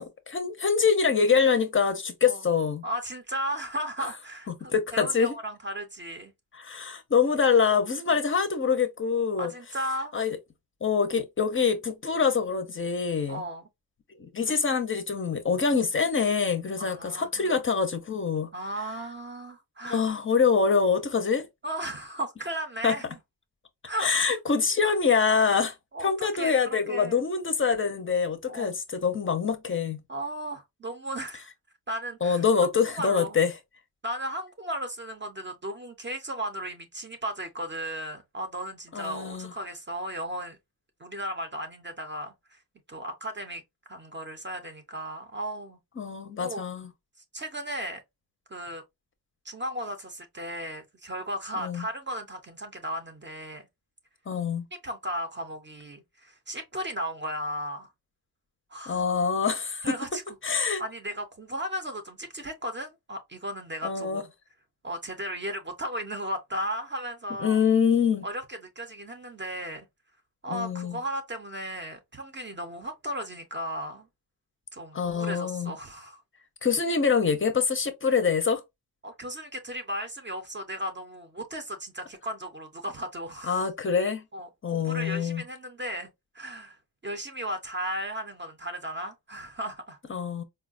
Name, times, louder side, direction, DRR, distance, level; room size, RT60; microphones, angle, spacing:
voice 1, 0.0-2.8 4.5-5.3 6.5-9.5 10.1-10.4 10.8-13.4 14.2-18.5 19.8-21.5 22.8-23.0 24.0-30.0 32.2-33.5 38.9-39.5 46.0-46.9 51.6-51.9 54.3-54.7 58.9-59.9 60.4-60.8 63.8-64.2 67.4-68.2 70.5-71.0 74.9-75.7 76.6-78.6 83.5-84.2 84.6-85.4 90.1-90.4, left 6 dB, 30° left, 0.5 m, -25 dB
voice 2, 2.8-6.3 9.4-10.1 13.3-13.6 16.8-17.6 18.5-20.0 21.6-23.0 23.9-24.1 25.9-27.2 28.5-28.8 30.1-31.5 31.9-32.4 32.9-33.4 34.0-40.6 41.0-42.6 42.9-43.6 43.9-45.8 46.4-46.7 47.2-48.0 48.5-48.8 49.4-53.7 54.8-57.9 58.7-59.0 59.8-60.3 60.8-64.3 64.8-67.6 68.2-69.9 70.4-74.1 74.7-76.2 79.0-83.7 84.3-86.8 87.0-90.0, equal, 30° right, 0.5 m, -35 dB
4.5 x 2.0 x 2.4 m
wide cardioid pair, 160°, 40 cm